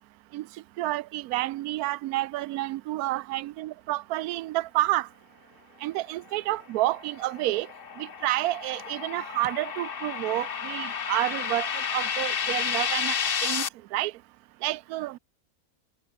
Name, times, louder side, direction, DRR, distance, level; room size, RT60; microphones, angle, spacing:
voice 1, 0.8-5.1 5.8-7.7 8.0-13.2 13.4-13.7 13.9-14.1 14.6-15.2, right 17 dB, 80° right, 1.1 m, -29 dB
sound 1, 6.9-13.7, left 7 dB, 45° left, 1.0 m, -31 dB
omnidirectional pair, 1.6 m